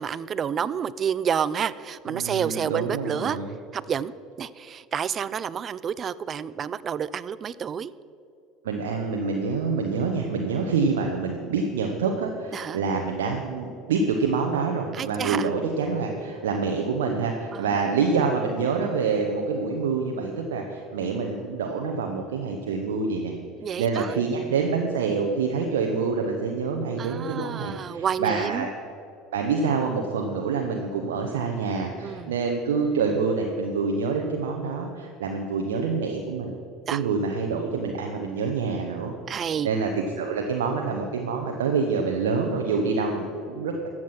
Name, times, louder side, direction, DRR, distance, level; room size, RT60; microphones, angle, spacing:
voice 1, 0.0-3.4 3.7-4.1 4.4-7.9 12.5-12.8 14.9-15.5 17.5-17.8 23.6-24.1 27.0-28.7 32.0-32.3 36.9-37.0 39.3-39.7, right 8 dB, 40° right, 18 dB, 0.4 m, -29 dB
voice 2, 2.1-3.5 8.6-23.4 23.8-28.7 29.3-36.6 36.9-39.1 39.6-39.9 40.2-43.7, right 5 dB, 80° right, 2 dB, 0.9 m, -26 dB
13.5 x 7.7 x 5.9 m, 2.6 s
hypercardioid pair, 70°, 0 cm